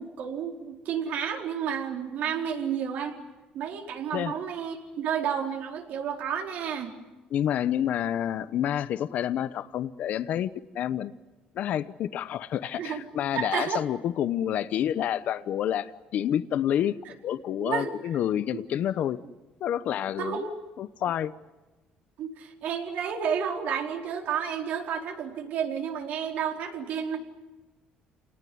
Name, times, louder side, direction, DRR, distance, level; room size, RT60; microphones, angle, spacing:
voice 1, 0.0-3.2 3.5-6.9 12.8-13.0 13.3-13.8 17.6-17.9 20.2-20.5 22.2-27.2, right 7 dB, 65° right, 2 dB, 4.5 m, -31 dB
voice 2, 7.3-11.1 11.6-19.2 19.6-20.5 20.8-21.3, left 10 dB, 60° left, 14 dB, 0.9 m, -28 dB
29.0 x 19.5 x 9.5 m, 1.2 s
cardioid pair, 135°, 3 cm